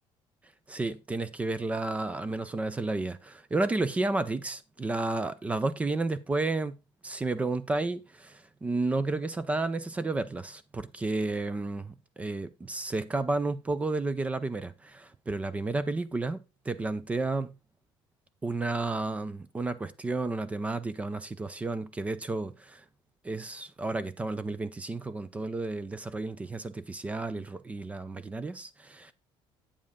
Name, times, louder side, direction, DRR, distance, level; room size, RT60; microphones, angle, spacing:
voice 1, 0.7-6.8 7.0-17.5 18.4-22.8 23.2-29.1, right 3 dB, 15° right, 0.4 m, -32 dB
8.5 x 7.4 x 3.5 m
cardioid pair, 165°, 10 cm